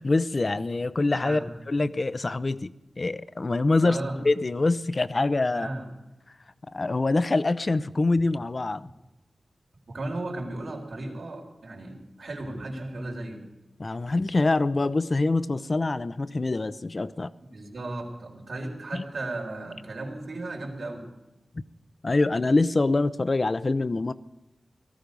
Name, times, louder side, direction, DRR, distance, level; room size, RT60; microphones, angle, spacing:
voice 1, 0.0-1.4 1.7-4.0 4.2-5.7 6.7-8.9 13.8-17.3 18.9-19.0 22.0-24.1, left 2 dB, 40° left, 0.6 m, -25 dB
voice 2, 1.2-1.5 3.8-4.2 5.5-5.9 9.9-13.5 17.5-21.1, right 2 dB, 70° right, 3.9 m, -35 dB
18.0 x 14.5 x 5.3 m
wide cardioid pair, 75°, 0 cm